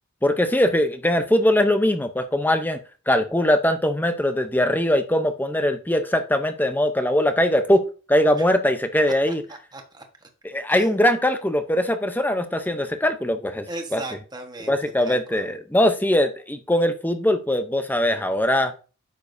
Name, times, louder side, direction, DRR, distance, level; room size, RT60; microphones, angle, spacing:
voice 1, 0.2-2.8 3.1-7.8 8.1-9.4 10.4-13.7 13.9-14.0 14.7-18.7, left 1 dB, 10° left, 9 dB, 0.7 m, -21 dB
voice 2, 9.3-10.3 10.7-10.9 13.7-15.5, right 2 dB, 20° right, 4 dB, 1.3 m, -38 dB
9.5 x 7.0 x 2.7 m, 0.35 s
head